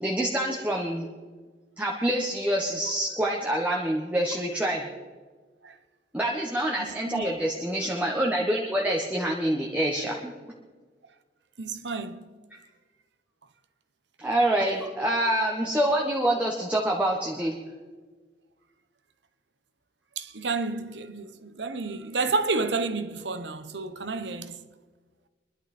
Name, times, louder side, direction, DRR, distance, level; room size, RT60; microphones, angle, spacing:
voice 1, 0.0-1.1 1.8-4.9 6.1-10.3 14.2-17.6, right 1 dB, 10° right, 1.3 m, -26 dB
voice 2, 6.8-7.2 11.6-12.2 20.2-24.6, right 3 dB, 90° right, 1.1 m, -30 dB
24.0 x 11.5 x 4.4 m
head